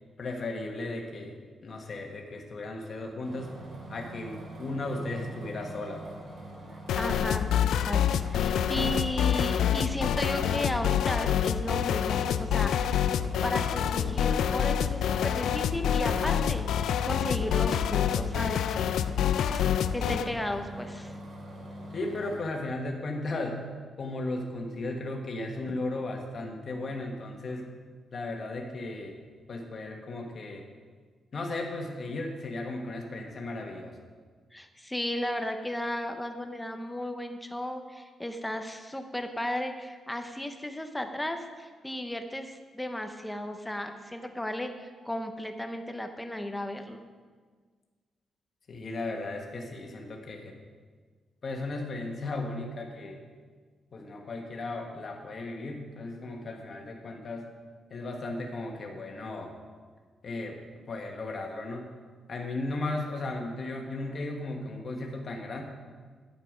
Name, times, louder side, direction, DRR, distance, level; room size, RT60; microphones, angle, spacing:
voice 1, 0.2-3.5 3.9-6.2 20.0-20.5 21.9-23.6 24.0-27.6 28.1-29.2 29.5-30.7 31.3-34.0 48.7-50.6 51.4-53.2 53.9-57.5 57.9-59.5 60.2-60.6 60.9-61.9 62.3-65.6, left 2 dB, 35° left, 1 dB, 1.6 m, -35 dB
sound 1, 3.2-22.4, right 1 dB, 45° right, 2.6 m, -44 dB
sound 2, 6.9-20.3, left 9 dB, 85° left, 0.4 m, -27 dB
voice 2, 7.0-13.0 13.4-18.8 19.9-21.1 34.5-47.0, left 1 dB, 5° left, 6 dB, 0.8 m, -34 dB
11.0 x 9.1 x 5.1 m, 1.5 s
wide cardioid pair, 165°, 0 cm